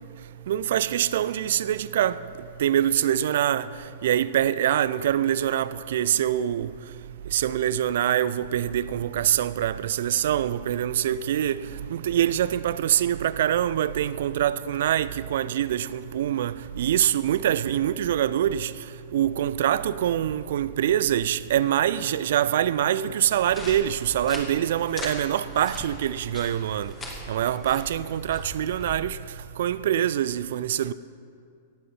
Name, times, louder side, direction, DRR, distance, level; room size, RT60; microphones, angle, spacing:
voice 1, 0.5-2.2 2.6-3.7 4.0-6.7 7.3-18.7 19.1-26.9 27.3-29.2 29.6-30.9, right 11 dB, 55° right, 0.4 m, -24 dB
sound 1, 23.4-29.0, left 2 dB, 20° left, 2.1 m, -40 dB
17.5 x 7.7 x 5.5 m
figure-of-eight pair, 100°, 0 cm